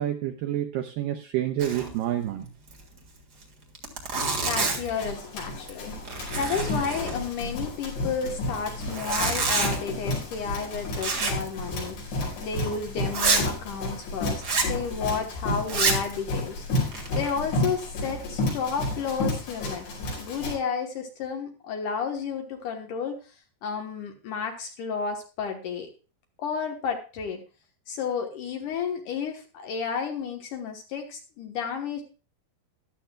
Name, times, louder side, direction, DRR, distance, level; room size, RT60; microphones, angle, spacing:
voice 1, 0.0-2.5, right 12 dB, 85° right, 6 dB, 2.0 m, -28 dB
Zipper (clothing), 1.6-2.0 2.2-2.3 2.7-2.8 3.4-3.5 3.7-5.0 5.5-5.8 6.0-7.5 8.8-9.8 11.0-11.5 11.8-11.9 12.4-12.5 13.1-13.5 14.4-14.7 15.6-16.1 16.7-17.3, right 4 dB, 70° right, 0.9 m, -27 dB
Run, 4.4-20.5, left 1 dB, 85° left, 7.1 m, -32 dB
voice 2, 4.4-5.9 6.4-12.0 12.4-19.9 20.2-23.3 23.6-25.9 26.4-27.4 27.9-32.0, left 6 dB, 65° left, 3 dB, 2.3 m, -32 dB
14.5 x 11.5 x 2.3 m, 0.33 s
omnidirectional pair, 4.8 m